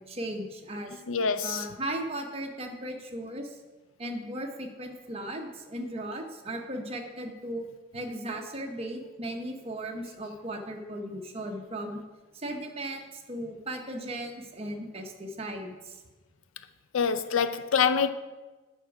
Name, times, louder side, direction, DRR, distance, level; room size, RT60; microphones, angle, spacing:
voice 1, 0.0-1.0 1.4-3.6 4.0-7.7 7.9-12.0 12.3-16.0, right 1 dB, 30° right, 0.9 m, -37 dB
voice 2, 1.1-1.6 16.9-18.1, left 6 dB, 85° left, 0.5 m, -25 dB
9.0 x 6.2 x 4.8 m
head